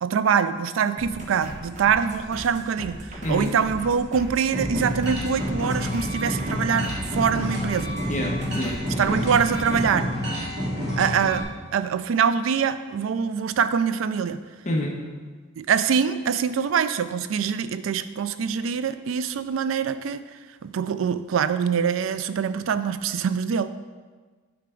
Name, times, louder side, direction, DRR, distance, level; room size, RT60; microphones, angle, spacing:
voice 1, 0.0-8.0 9.0-10.1 11.0-14.4 15.6-20.3 20.6-23.7, right 7 dB, 90° right, 13 dB, 0.4 m, -24 dB
sound 1, 1.0-9.9, right 1 dB, 35° right, 1.0 m, -38 dB
sound 2, 4.5-11.4, equal, 55° right, 2.1 m, -29 dB
voice 2, 8.1-9.2 14.6-14.9, left 1 dB, 35° left, -2 dB, 1.1 m, -28 dB
8.6 x 4.6 x 3.8 m, 1.4 s
head